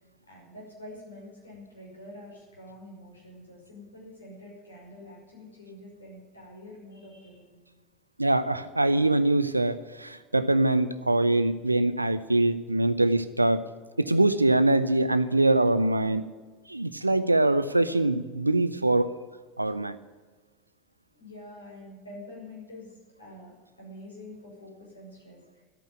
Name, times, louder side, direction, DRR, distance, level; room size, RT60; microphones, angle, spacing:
voice 1, 0.3-7.6 21.2-22.9 23.2-25.6, left 1 dB, 80° left, -3 dB, 5.6 m, -46 dB
voice 2, 8.2-13.7 14.0-16.3 16.7-19.1 19.6-20.0, right 2 dB, 85° right, 14 dB, 0.6 m, -23 dB
12.5 x 9.0 x 9.5 m, 1.3 s
figure-of-eight pair, 70°, 0 cm